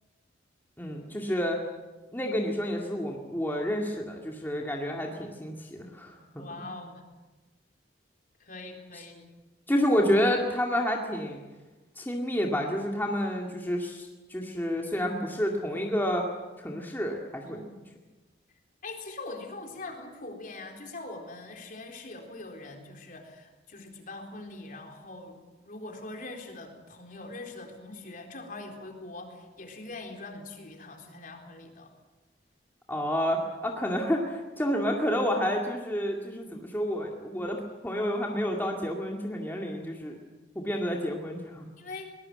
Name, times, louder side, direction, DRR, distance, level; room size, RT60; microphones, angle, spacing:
voice 1, 0.8-1.6 2.1-6.4 8.9-9.0 9.7-11.4 12.0-16.2 16.6-17.6 32.9-40.2 40.6-41.7, equal, 10° left, 0 dB, 2.2 m, -29 dB
voice 2, 6.3-7.0 8.4-9.2 17.5-17.8 18.8-31.9 41.8-42.1, left 2 dB, 50° left, 2 dB, 4.0 m, -42 dB
22.5 x 20.5 x 7.8 m, 1.2 s
head